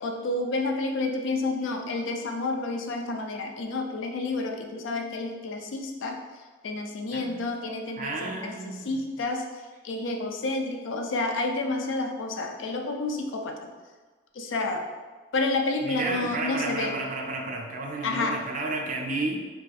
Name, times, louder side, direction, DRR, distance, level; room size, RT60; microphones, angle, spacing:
voice 1, 0.0-13.7 14.3-14.9 15.3-17.0 18.0-18.4, left 2 dB, 80° left, 3 dB, 0.4 m, -30 dB
voice 2, 8.0-9.1 15.8-19.5, right 2 dB, 40° right, 1 dB, 0.4 m, -32 dB
2.6 x 2.4 x 4.0 m, 1.4 s
head